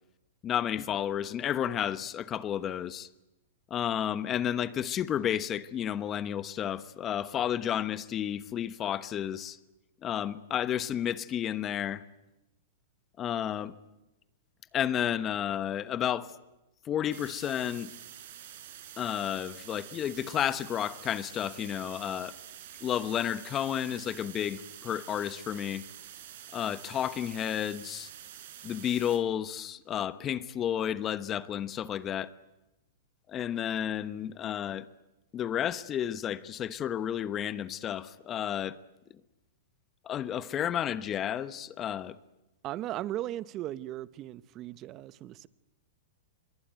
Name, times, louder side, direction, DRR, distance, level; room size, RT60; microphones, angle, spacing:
voice 1, 0.4-3.1 3.7-9.6 10.0-12.0 13.2-13.8 14.7-16.3 16.8-17.9 19.0-22.3 22.8-25.8 26.5-28.1 28.6-32.3 33.3-34.9 35.3-38.8 40.0-42.1, left 10 dB, 25° left, 1.1 m, -31 dB
sound 1, 17.1-29.2, right 11 dB, 65° right, 4.7 m, -47 dB
voice 2, 42.6-45.5, right 13 dB, 35° right, 1.0 m, -37 dB
25.5 x 22.5 x 9.4 m
hypercardioid pair, 130°, 0 cm